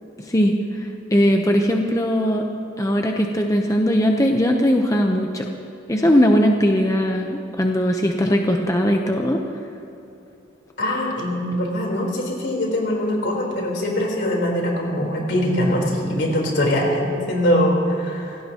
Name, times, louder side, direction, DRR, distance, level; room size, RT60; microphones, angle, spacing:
voice 1, 0.2-2.5 2.8-5.5 5.9-9.6, equal, 20° left, 2 dB, 0.9 m, -19 dB
voice 2, 10.8-18.4, left 1 dB, 70° left, -1 dB, 4.0 m, -22 dB
26.0 x 18.0 x 3.0 m, 2.9 s
head